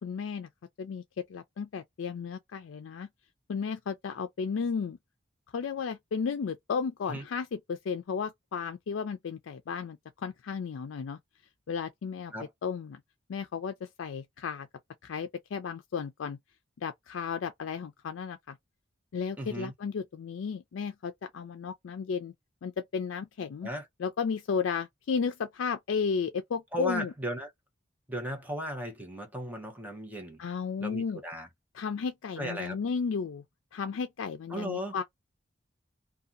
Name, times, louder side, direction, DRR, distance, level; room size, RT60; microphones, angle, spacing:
voice 1, 0.0-0.5 0.8-1.0 1.3-3.1 3.5-5.0 5.5-11.2 11.7-12.3 12.6-13.0 13.3-14.7 15.0-16.4 16.8-18.6 19.1-22.3 22.6-23.7 24.0-27.1 30.4-31.2 31.7-33.4 33.7-35.0, left 6 dB, 80° left, 0.4 m, -34 dB
voice 2, 19.4-19.7 23.6-23.8 26.7-27.5 28.1-30.4 30.8-31.5 32.4-32.8 34.5-35.0, equal, 10° right, 0.9 m, -36 dB
2.7 x 2.3 x 2.5 m
head